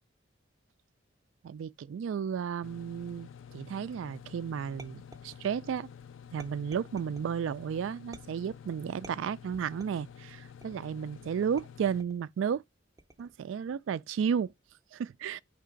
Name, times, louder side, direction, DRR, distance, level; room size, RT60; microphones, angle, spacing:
voice 1, 1.4-5.9 6.3-12.6 13.2-14.5 14.9-15.4, right 7 dB, 70° right, 0.3 m, -33 dB
sound 1, 2.6-12.0, left 7 dB, 70° left, 0.4 m, -50 dB
sound 2, 4.8-5.7 6.4-7.3 8.1-8.6 9.0-10.1 10.6-11.0 11.6-12.2 13.0-13.4, right 2 dB, 15° right, 0.6 m, -53 dB
5.5 x 3.4 x 5.0 m
head